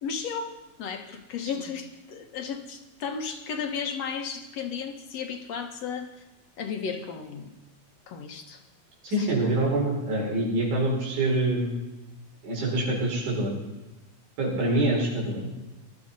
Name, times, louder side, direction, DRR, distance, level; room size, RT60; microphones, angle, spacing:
voice 1, 0.0-6.1 6.6-7.5 8.1-8.6 9.2-9.5, left 6 dB, 65° left, 5 dB, 2.4 m, -34 dB
voice 2, 9.0-11.7 12.4-13.6 14.4-15.5, right 1 dB, 85° right, -1 dB, 6.2 m, -25 dB
20.5 x 13.0 x 5.5 m, 1.0 s
omnidirectional pair, 3.4 m